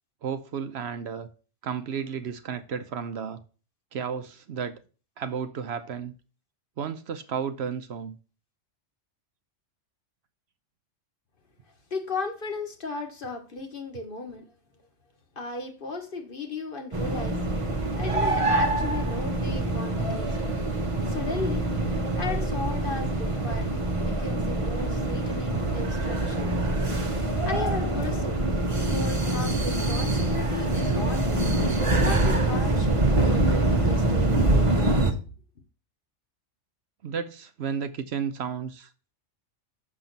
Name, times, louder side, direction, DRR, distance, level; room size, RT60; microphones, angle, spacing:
voice 1, 0.2-1.3 1.6-3.4 3.9-4.8 5.2-6.1 6.8-8.1 37.0-39.1, right 7 dB, 65° right, 0.9 m, -33 dB
voice 2, 11.9-14.4 15.4-17.4 18.0-20.3 21.1-21.6 22.2-23.7 24.0-26.6 27.4-28.4 28.7-31.4 32.0-35.0, left 3 dB, 45° left, 1.4 m, -35 dB
sound 1, 16.9-35.1, right 2 dB, 30° right, 0.9 m, -25 dB
6.7 x 5.9 x 3.9 m
omnidirectional pair, 1.3 m